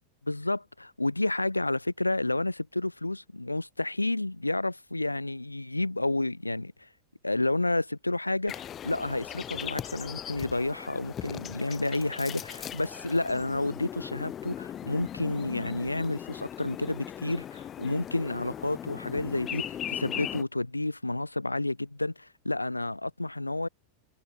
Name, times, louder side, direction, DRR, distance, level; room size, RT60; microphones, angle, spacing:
voice 1, 0.3-6.9 7.2-23.7, left 2 dB, 85° left, 2.4 m, -30 dB
sound 1, 8.5-20.4, left 10 dB, 25° left, 6.5 m, -39 dB
figure-of-eight pair, 90°, 0 cm